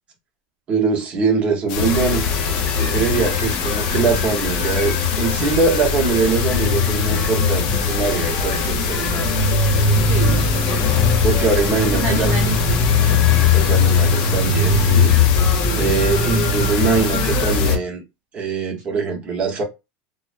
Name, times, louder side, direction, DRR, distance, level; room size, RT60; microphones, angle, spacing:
voice 1, 0.7-2.2 2.8-9.3 11.2-12.3 13.5-15.5 15.8-18.0 18.3-19.6, right 5 dB, 30° right, 0.9 m, -22 dB
sound 1, 1.7-17.8, left 9 dB, 65° left, 0.4 m, -28 dB
sound 2, 1.7-17.8, left 4 dB, 35° left, 0.9 m, -19 dB
voice 2, 10.0-11.2 11.8-12.9 15.6-16.2, right 7 dB, 55° right, 0.6 m, -29 dB
2.5 x 2.0 x 2.5 m
supercardioid pair, 140°, 4 cm